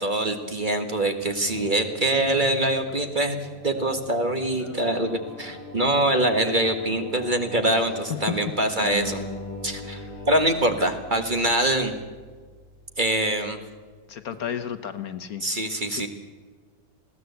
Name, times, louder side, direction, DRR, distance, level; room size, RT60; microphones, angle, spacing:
voice 1, 0.0-3.4 3.6-9.2 9.6-11.9 13.0-13.6 15.4-16.1, right 1 dB, 30° right, 6 dB, 1.6 m, -24 dB
Singing, 1.2-11.0, left 2 dB, 15° left, 3.0 m, -42 dB
Acoustic guitar, 8.8-13.3, left 1 dB, 90° right, 6.2 m, -40 dB
voice 2, 14.1-15.4 15.9-16.1, left 9 dB, 60° left, 11 dB, 1.3 m, -32 dB
20.5 x 16.0 x 8.1 m, 1.4 s
omnidirectional pair, 1.8 m